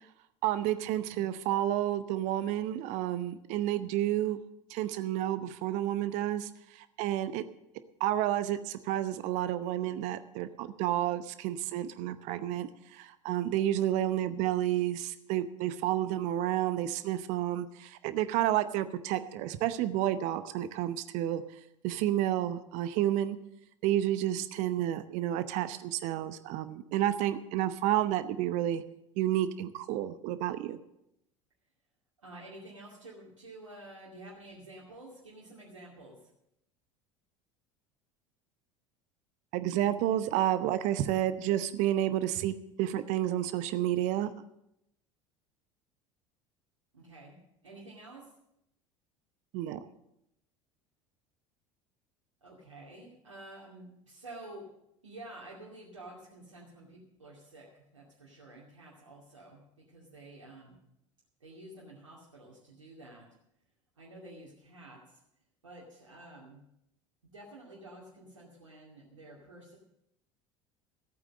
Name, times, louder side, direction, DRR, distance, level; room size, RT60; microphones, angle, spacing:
voice 1, 0.4-4.4 4.7-6.5 7.0-7.4 8.0-21.4 21.8-23.4 23.8-28.8 29.2-30.8 39.5-44.3 49.5-49.8, right 12 dB, 50° right, 13 dB, 0.8 m, -30 dB
voice 2, 32.2-36.2 46.9-47.4 47.6-48.2 52.4-54.7 55.0-59.6 59.9-60.8 61.4-63.3 64.0-65.2 65.6-66.6 67.2-69.8, right 1 dB, 75° right, -6 dB, 2.5 m, -50 dB
15.0 x 8.7 x 6.4 m, 0.81 s
figure-of-eight pair, 70°, 16 cm